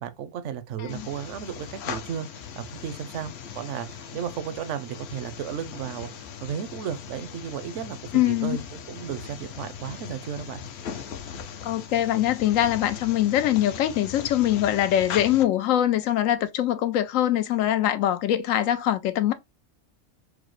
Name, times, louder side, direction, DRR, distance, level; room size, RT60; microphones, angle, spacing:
voice 1, 0.0-10.6, right 8 dB, 75° right, 0.9 m, -34 dB
sound 1, 0.9-15.5, left 7 dB, 60° left, 0.8 m, -39 dB
voice 2, 8.1-8.6 11.6-19.3, left 12 dB, 85° left, 1.0 m, -23 dB
4.8 x 2.1 x 3.0 m
omnidirectional pair, 1.3 m